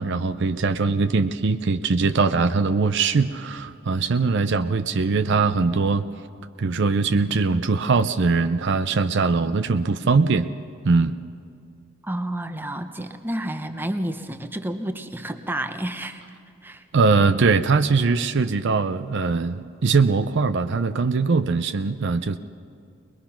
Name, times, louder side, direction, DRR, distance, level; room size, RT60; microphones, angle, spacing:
voice 1, 0.0-6.1 6.6-10.5 10.9-11.2 16.9-22.4, right 4 dB, 55° right, 10 dB, 0.5 m, -21 dB
voice 2, 12.0-16.4 16.6-16.9, right 1 dB, 10° right, 7 dB, 0.8 m, -30 dB
22.0 x 21.0 x 5.9 m, 2.4 s
head